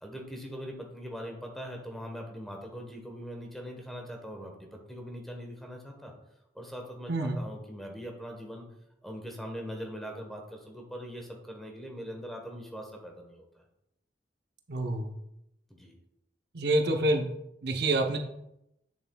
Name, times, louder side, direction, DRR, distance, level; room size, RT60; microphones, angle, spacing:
voice 1, 0.0-6.1 6.5-8.7 9.0-13.6 15.7-15.9, equal, ahead, 2 dB, 1.1 m, -41 dB
voice 2, 14.7-15.1 16.5-17.3 17.6-18.2, right 2 dB, 65° right, 4 dB, 0.7 m, -27 dB
8.3 x 6.8 x 2.3 m, 0.83 s
head